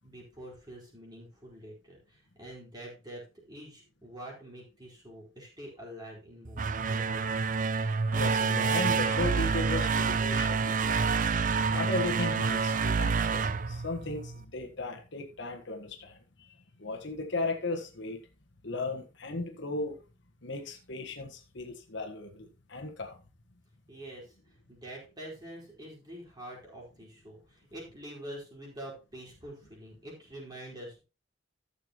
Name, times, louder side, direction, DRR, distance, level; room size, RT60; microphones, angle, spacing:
voice 1, 0.0-7.3 23.9-31.0, right 1 dB, 20° right, -3 dB, 4.5 m, -46 dB
sound 1, 6.4-14.4, right 5 dB, 40° right, 0.5 m, -28 dB
voice 2, 8.1-11.2 11.7-18.2 18.6-20.0 20.4-23.2, left 2 dB, 60° left, 3 dB, 1.4 m, -36 dB
13.5 x 6.9 x 3.0 m, 0.31 s
head